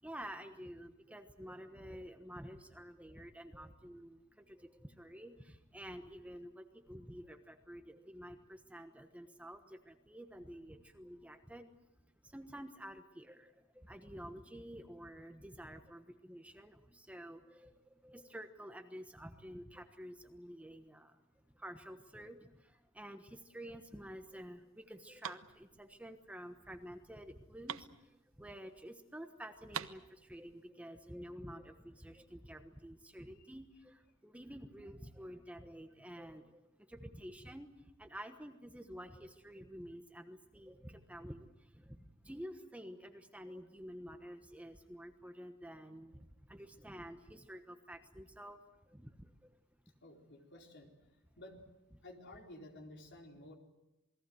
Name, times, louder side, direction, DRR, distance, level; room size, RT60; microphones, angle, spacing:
voice 1, 0.0-11.7 12.2-21.2 21.5-49.6, equal, 5° right, 7 dB, 1.2 m, -50 dB
sound 1, 24.3-28.8 29.1-29.2 29.4-30.7, right 8 dB, 75° right, 1.0 m, -47 dB
voice 2, 50.0-50.9 51.4-51.6 52.0-53.6, left 1 dB, 60° left, 2 dB, 4.3 m, -53 dB
28.0 x 21.0 x 7.9 m, 0.94 s
head